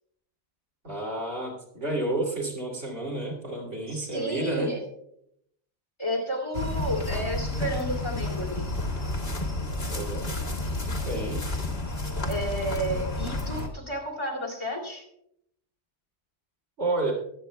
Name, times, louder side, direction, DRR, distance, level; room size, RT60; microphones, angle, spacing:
voice 1, 0.8-4.7 9.9-10.3 10.8-11.5 16.8-17.1, right 2 dB, 85° right, -1 dB, 3.3 m, -30 dB
voice 2, 3.9-4.8 6.0-8.6 12.2-15.0, equal, 25° left, -2 dB, 2.9 m, -32 dB
sound 1, 6.5-13.7, left 2 dB, 55° left, 2.1 m, -30 dB
22.5 x 8.3 x 2.3 m, 0.74 s
omnidirectional pair, 1.2 m